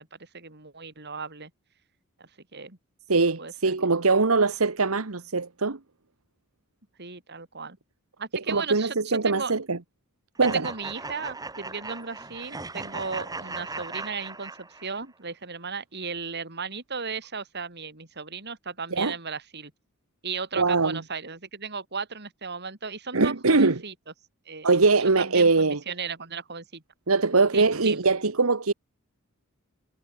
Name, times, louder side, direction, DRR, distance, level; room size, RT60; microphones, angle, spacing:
voice 1, 0.0-1.5 2.2-2.8 3.1-3.9 7.0-7.8 8.2-9.5 10.4-19.7 20.2-23.9 24.5-24.7 25.2-26.8 27.5-28.0, right 5 dB, 50° right, 4.4 m, -36 dB
voice 2, 3.1-5.8 8.5-9.8 10.4-10.7 18.9-19.1 20.5-21.0 23.1-23.8 24.6-25.8 27.1-28.7, right 3 dB, 75° right, 1.3 m, -22 dB
sound 1, 10.4-15.0, right 3 dB, 20° right, 2.3 m, -38 dB
head